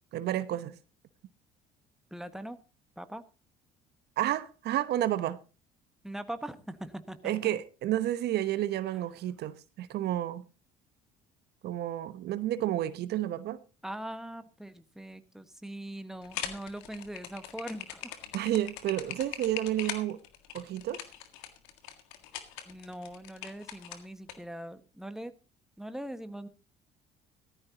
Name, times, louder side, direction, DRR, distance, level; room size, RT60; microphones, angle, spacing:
voice 1, 0.1-0.8 4.2-5.4 7.2-10.4 11.6-13.6 18.3-20.2 20.5-21.0, right 13 dB, 60° right, 1.0 m, -31 dB
voice 2, 2.1-2.6 3.0-3.2 6.0-7.5 13.8-18.2 22.6-25.3 25.8-26.5, right 1 dB, ahead, 1.5 m, -41 dB
sound 1, 16.2-24.3, left 11 dB, 75° left, 1.8 m, -41 dB
16.5 x 13.5 x 2.9 m
hypercardioid pair, 65°, 19 cm